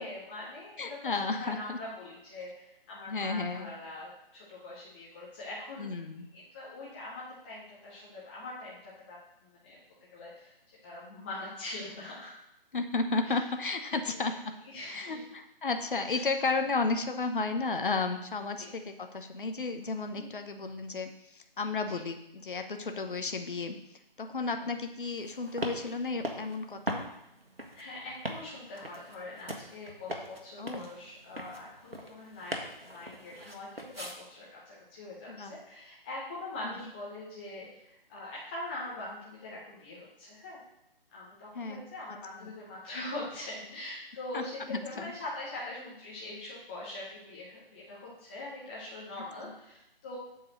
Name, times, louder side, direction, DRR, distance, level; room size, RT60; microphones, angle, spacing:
voice 1, 0.0-6.0 6.3-9.8 10.1-10.5 10.8-12.3 13.2-13.3 14.1-14.3 14.6-15.2 16.0-16.3 18.6-18.7 20.1-20.3 21.9-22.0 24.4-24.7 27.7-40.6 41.1-50.2, left 2 dB, 10° left, -7 dB, 0.7 m, -43 dB
voice 2, 0.8-1.8 3.1-3.7 5.8-6.3 12.7-14.5 14.9-23.8 24.2-27.1 30.6-30.9 35.3-35.5 36.6-36.7 41.5-42.2 42.4-42.5 44.3-45.1 49.4-49.5, left 3 dB, 60° left, 7 dB, 0.9 m, -33 dB
sound 1, 25.2-34.2, equal, 90° right, 1.4 m, -41 dB
7.9 x 4.0 x 6.3 m, 0.84 s
figure-of-eight pair, 145°, 29 cm